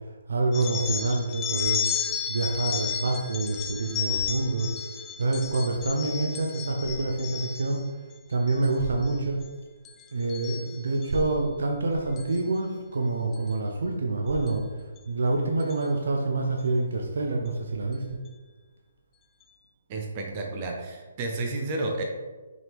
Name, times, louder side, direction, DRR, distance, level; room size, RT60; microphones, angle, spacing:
voice 1, 0.3-1.9 2.3-4.7 5.2-7.8 8.3-9.4 10.1-14.7 15.0-18.2, right 2 dB, 75° right, 2 dB, 0.8 m, -27 dB
sound 1, 0.5-7.8 8.3-8.7 9.0-9.5 9.8-11.2 12.2-12.4 13.3-13.5 14.5-14.6 15.0-15.1 15.6-15.8, left 8 dB, 15° left, 0.5 m, -33 dB
voice 2, 19.9-22.0, right 2 dB, 30° right, 1 dB, 0.7 m, -31 dB
6.1 x 4.7 x 3.6 m, 1.3 s
hypercardioid pair, 160°, 0 cm